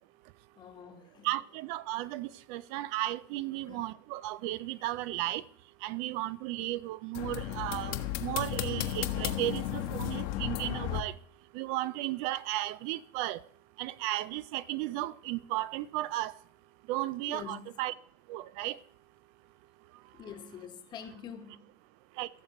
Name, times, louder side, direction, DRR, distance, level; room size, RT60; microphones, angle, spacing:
voice 1, 0.6-1.3 3.7-3.8 17.3-17.7 20.1-21.6, left 8 dB, 35° left, 1.2 m, -45 dB
voice 2, 1.2-5.4 5.8-11.1 11.5-13.4 13.8-16.3 16.9-17.9 18.3-18.8 22.2-22.3, right 16 dB, 55° right, 0.4 m, -34 dB
sound 1, 7.1-11.0, left 12 dB, 60° left, 1.2 m, -34 dB
15.5 x 6.6 x 3.0 m
supercardioid pair, 120°, 13 cm